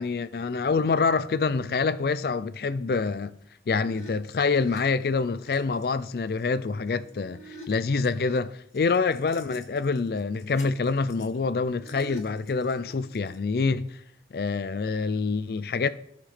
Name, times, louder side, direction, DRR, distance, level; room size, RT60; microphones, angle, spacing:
voice 1, 0.0-3.3 3.7-7.4 7.7-14.0 14.3-15.9, left 4 dB, 55° left, 0.4 m, -26 dB
sound 1, 3.8-5.8 6.4-8.4 8.7-13.4, right 1 dB, 40° left, 1.8 m, -49 dB
16.0 x 5.8 x 3.3 m
head